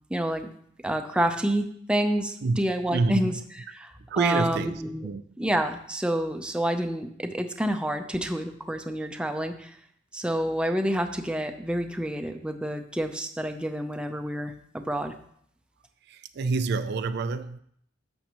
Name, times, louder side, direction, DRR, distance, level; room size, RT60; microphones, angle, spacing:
voice 1, 0.1-0.5 0.8-3.4 3.7-5.1 5.4-9.7 10.1-15.1, right 1 dB, 5° right, 0.5 m, -28 dB
voice 2, 2.9-3.4 4.1-5.2 16.0-17.6, right 4 dB, 60° right, 0.4 m, -27 dB
11.5 x 7.0 x 3.0 m
head